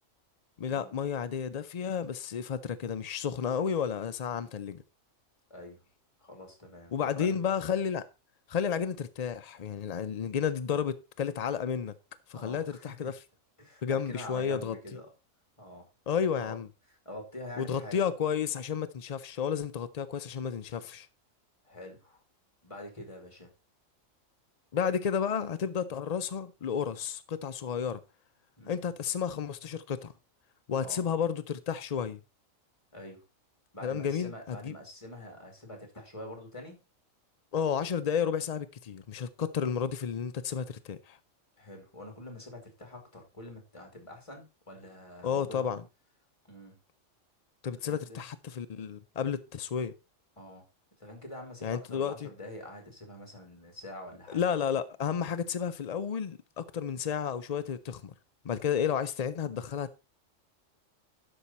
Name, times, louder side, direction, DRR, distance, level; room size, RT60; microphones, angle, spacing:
voice 1, 0.6-4.8 6.9-8.0 8.5-11.9 12.3-13.2 13.8-15.0 16.1-16.7 17.6-21.1 24.7-28.0 28.7-30.1 30.7-32.2 33.8-34.7 37.5-41.2 45.2-45.8 47.6-49.9 51.6-52.3 54.3-58.1 58.4-60.0, left 7 dB, 65° left, 0.4 m, -32 dB
voice 2, 6.2-7.6 12.3-13.1 13.6-15.1 15.6-15.9 16.4-16.5 16.9-18.0 21.6-22.2 22.6-23.5 28.6-28.8 30.8-31.0 32.9-33.2 33.7-36.8 41.6-45.7 46.4-46.8 47.7-48.2 50.4-50.6 51.0-54.4, left 1 dB, 25° left, 2.7 m, -46 dB
12.0 x 5.5 x 4.2 m
omnidirectional pair, 1.4 m